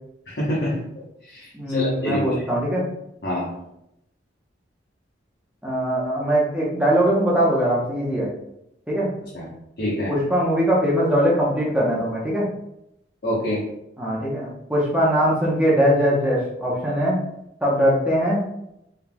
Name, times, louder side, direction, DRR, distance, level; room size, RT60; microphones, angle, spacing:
voice 1, 0.3-0.7 1.3-2.4 3.2-3.5 9.3-9.4 9.8-10.1 13.2-13.6, left 1 dB, 55° left, -8 dB, 1.1 m, -25 dB
voice 2, 1.5-2.8 5.6-8.3 8.9-9.1 10.1-12.5 14.0-17.2 17.6-18.4, equal, 5° right, -6 dB, 1.0 m, -21 dB
4.4 x 3.6 x 2.3 m, 0.81 s
head